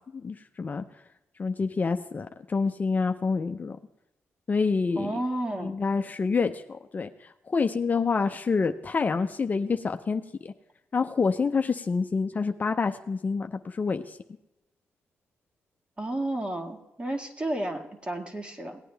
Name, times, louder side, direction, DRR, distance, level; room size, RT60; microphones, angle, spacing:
voice 1, 0.1-0.8 1.4-3.8 4.5-5.1 5.6-7.1 7.5-10.5 10.9-14.2, left 4 dB, 35° left, 6 dB, 0.6 m, -27 dB
voice 2, 4.9-5.8 16.0-18.8, right 1 dB, 20° right, 4 dB, 1.9 m, -32 dB
18.0 x 9.2 x 3.4 m, 0.92 s
cardioid pair, 85°, 5 cm